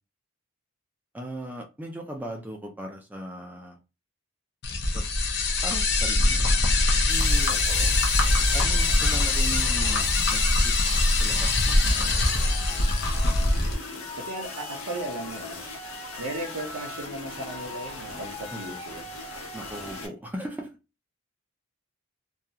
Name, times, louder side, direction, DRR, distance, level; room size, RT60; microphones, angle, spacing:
voice 1, 1.1-3.8 4.9-5.1 5.6-6.6 6.9-7.5 8.5-10.7 11.2-12.2 18.5-18.8 19.5-20.8, right 1 dB, 10° right, 0.3 m, -38 dB
sound 1, 4.6-13.7, left 2 dB, 50° left, 0.5 m, -23 dB
sound 2, 7.1-20.1, left 3 dB, 80° left, 0.9 m, -39 dB
sound 3, 7.2-12.5, equal, 20° left, 0.8 m, -35 dB
voice 2, 7.5-7.9 14.2-15.6 16.2-19.0, right 2 dB, 85° right, 0.6 m, -36 dB
2.3 x 2.3 x 2.7 m
head